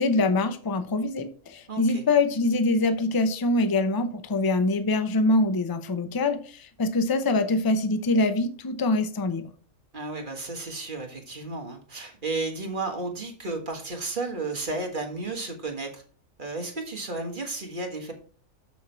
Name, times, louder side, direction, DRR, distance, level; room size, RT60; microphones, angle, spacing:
voice 1, 0.0-9.5, left 2 dB, 25° left, 10 dB, 0.5 m, -24 dB
voice 2, 1.7-2.0 9.9-16.0 16.4-18.1, right 3 dB, 40° right, 3 dB, 1.5 m, -33 dB
7.2 x 6.0 x 4.4 m, 0.41 s
omnidirectional pair, 1.4 m